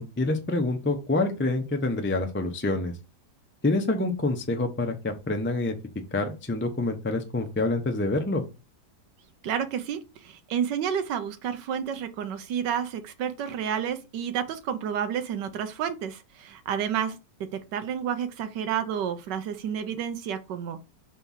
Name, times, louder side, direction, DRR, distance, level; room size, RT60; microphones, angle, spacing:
voice 1, 0.0-2.9 3.6-5.8 6.1-8.4, left 2 dB, 10° left, 0.5 m, -27 dB
voice 2, 9.4-20.8, right 8 dB, 85° right, 1.4 m, -30 dB
4.6 x 4.5 x 5.6 m
omnidirectional pair, 1.8 m